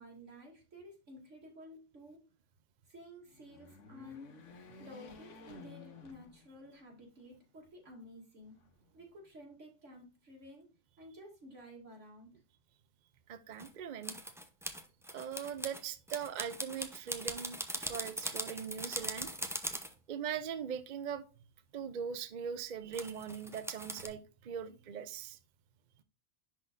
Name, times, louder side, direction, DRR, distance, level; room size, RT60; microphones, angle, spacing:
voice 1, 0.0-2.2 2.9-4.3 4.8-8.6 8.9-10.7 11.0-12.3, equal, 75° right, 2.9 m, -53 dB
sound 1, 3.3-6.9 7.3-7.4 8.5-9.3, left 4 dB, 75° left, 1.4 m, -53 dB
voice 2, 13.3-14.2 15.1-19.3 20.1-21.2 21.7-25.4, right 7 dB, 50° right, 0.6 m, -41 dB
sound 2, 13.6-13.7 14.0-19.9 22.9-24.1, equal, 5° right, 0.6 m, -40 dB
11.0 x 4.1 x 2.5 m
omnidirectional pair, 1.3 m